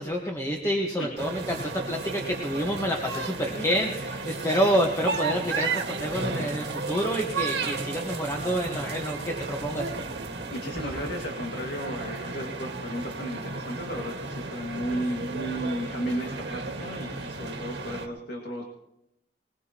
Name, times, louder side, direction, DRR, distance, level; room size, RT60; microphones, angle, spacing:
voice 1, 0.0-9.9, equal, 15° left, 0 dB, 1.4 m, -28 dB
sound 1, 1.2-18.1, right 3 dB, 75° right, 1.7 m, -33 dB
voice 2, 10.5-18.6, equal, 75° left, 1 dB, 2.0 m, -34 dB
21.0 x 21.0 x 3.0 m, 0.81 s
head